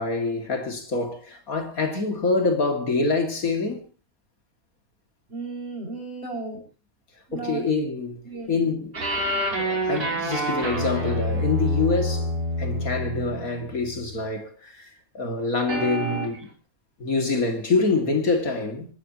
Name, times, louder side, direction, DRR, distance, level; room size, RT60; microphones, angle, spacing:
voice 1, 0.0-3.8 7.3-8.2 8.5-9.0 9.6-16.5 17.0-18.9, left 3 dB, 65° left, 3.0 m, -26 dB
voice 2, 5.3-6.6 7.3-7.7 8.2-8.7, right 3 dB, 40° right, 7.1 m, -35 dB
sound 1, 8.9-14.2 15.7-16.4, equal, 85° right, 4.2 m, -27 dB
26.5 x 14.0 x 3.1 m
omnidirectional pair, 1.6 m